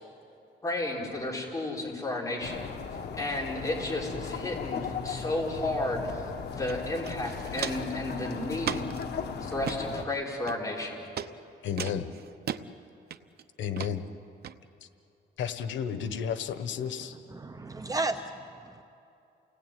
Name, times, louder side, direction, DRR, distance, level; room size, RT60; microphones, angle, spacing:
voice 1, 0.6-2.7 3.1-8.9 9.4-11.1, left 2 dB, 15° left, -2 dB, 5.1 m, -33 dB
sound 1, 2.4-10.0, left 6 dB, 65° left, 1.6 m, -37 dB
Walk footsteps, 6.7-6.8 7.0-7.9 8.6-9.0 9.5-9.8 10.5-10.8 11.2-11.3 11.8-12.6 13.1-13.4 13.8-13.9 14.4-14.5, right 9 dB, 60° right, 0.9 m, -35 dB
voice 2, 11.6-12.1 13.6-14.0 15.4-17.1, left 8 dB, 90° left, 10 dB, 1.3 m, -32 dB
voice 3, 17.3-18.8, right 2 dB, 20° right, 7 dB, 0.9 m, -34 dB
29.5 x 19.0 x 9.4 m, 2.7 s
cardioid pair, 145°, 19 cm